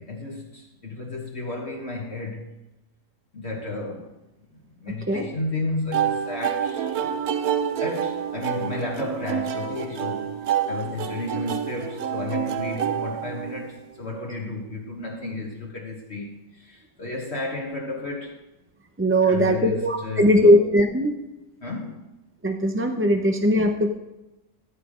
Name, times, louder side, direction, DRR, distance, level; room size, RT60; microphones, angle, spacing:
voice 1, 0.0-2.6 3.3-4.1 4.8-7.1 7.8-18.4 19.2-20.6 21.6-22.0, left 2 dB, 45° left, 1.5 m, -33 dB
sound 1, 5.9-13.9, right 8 dB, 75° right, 1.3 m, -28 dB
voice 2, 19.0-21.2 22.4-23.9, equal, 15° right, 0.4 m, -19 dB
15.0 x 8.2 x 5.1 m
omnidirectional pair, 1.6 m